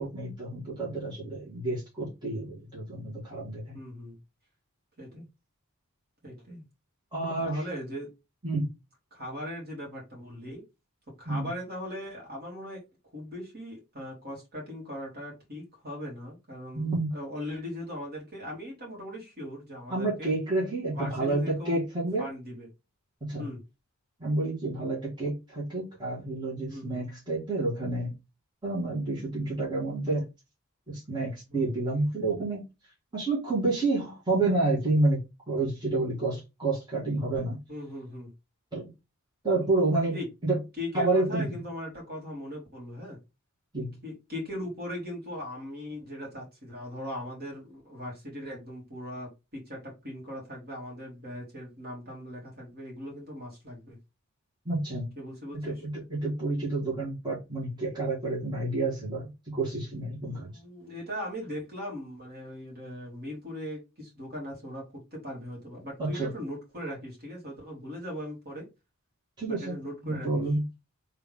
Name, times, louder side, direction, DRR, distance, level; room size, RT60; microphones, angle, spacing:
voice 1, 0.0-3.8 7.1-7.6 8.4-8.7 11.3-11.5 16.7-17.1 19.9-22.3 23.2-23.5 24.2-28.1 28.6-30.3 30.9-32.6 33.1-37.6 38.7-38.9 39.4-40.2 40.4-40.6 40.9-41.5 43.7-44.0 54.7-55.1 55.6-60.5 66.0-66.3 69.4-69.7 70.0-70.6, right 2 dB, 20° right, 1.8 m, -29 dB
voice 2, 3.7-4.2 5.0-5.3 6.2-6.6 7.4-8.1 9.1-10.6 11.2-12.8 13.1-20.3 20.9-21.8 22.2-22.7 23.4-23.6 26.7-27.1 31.5-31.8 37.7-38.3 39.5-39.7 40.1-40.3 40.8-43.2 44.0-54.0 55.2-55.8 60.3-68.7 69.5-70.4, equal, 45° right, 2.3 m, -39 dB
3.5 x 3.4 x 3.5 m
head